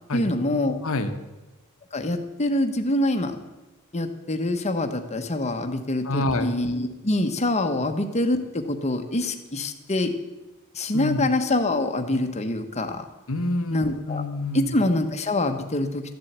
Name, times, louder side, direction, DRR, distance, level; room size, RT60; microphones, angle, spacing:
voice 1, 0.1-0.8 1.9-3.4 3.9-8.4 8.7-10.1 10.7-13.0 13.7-14.2 14.5-16.0, left 1 dB, 30° left, 6 dB, 1.1 m, -25 dB
voice 2, 0.8-1.2 6.0-6.5 10.9-11.3 13.3-14.7, left 2 dB, 65° left, 8 dB, 1.2 m, -27 dB
13.5 x 7.5 x 8.1 m, 1.1 s
head